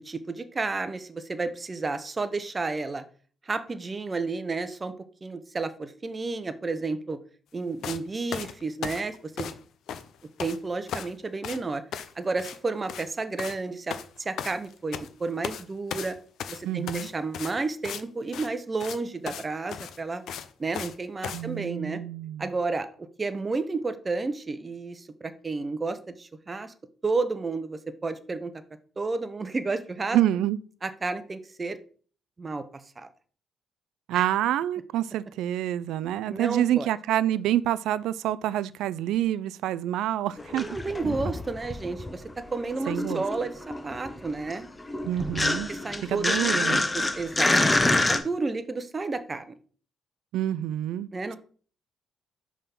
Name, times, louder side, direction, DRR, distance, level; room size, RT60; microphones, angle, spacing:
voice 1, 0.0-3.0 3.4-4.9 5.2-7.2 7.5-9.5 10.4-11.8 12.2-16.1 16.5-20.2 20.6-22.0 22.4-26.7 27.0-28.5 29.0-30.2 30.8-31.8 32.4-33.1 34.1-34.2 36.3-36.9 40.5-44.7 45.7-47.7 48.1-49.5 51.1-51.4, right 3 dB, 30° right, 0.7 m, -31 dB
sound 1, 7.8-8.0 8.3-9.6 9.9-10.6 10.9-11.2 11.4-11.6 11.9-12.1 12.4-12.6 12.8-13.1 13.4-13.6 13.9-15.1 15.4-15.6 15.9-18.0 18.3-18.5 18.8-19.0 19.3-19.4 19.7-21.0 21.2-21.4, left 8 dB, 75° left, 0.5 m, -36 dB
voice 2, 16.6-17.1 21.3-22.4 30.1-30.6 34.1-40.7 41.0-41.2 42.9-43.2 45.0-45.7 46.1-46.9 50.3-51.1, right 12 dB, 85° right, 0.3 m, -27 dB
sound 2, 40.4-42.3 42.6-48.2, left 2 dB, 20° left, 0.8 m, -27 dB
5.4 x 3.6 x 5.8 m
cardioid pair, 90°, 0 cm